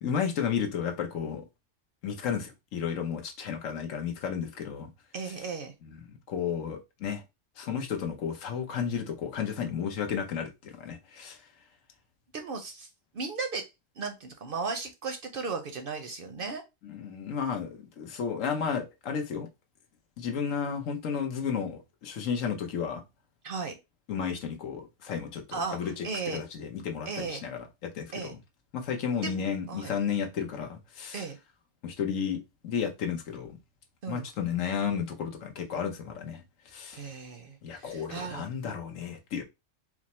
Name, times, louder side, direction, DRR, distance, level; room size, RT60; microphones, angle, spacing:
voice 1, 0.0-1.5 2.0-4.9 5.8-7.2 7.6-11.4 16.8-19.5 20.2-23.0 24.1-26.1 26.3-28.3 28.7-31.2 31.8-33.6 34.1-37.0 37.6-39.4, left 7 dB, 80° left, 1.2 m, -33 dB
voice 2, 5.1-5.7 12.3-12.9 13.1-13.7 14.0-16.6 23.4-23.8 25.5-26.4 27.1-27.4 28.1-28.3 29.2-29.4 29.7-29.9 31.1-31.4 34.0-34.3 36.9-38.5, right 4 dB, 55° right, 0.7 m, -36 dB
4.8 x 2.0 x 4.2 m
omnidirectional pair, 1.3 m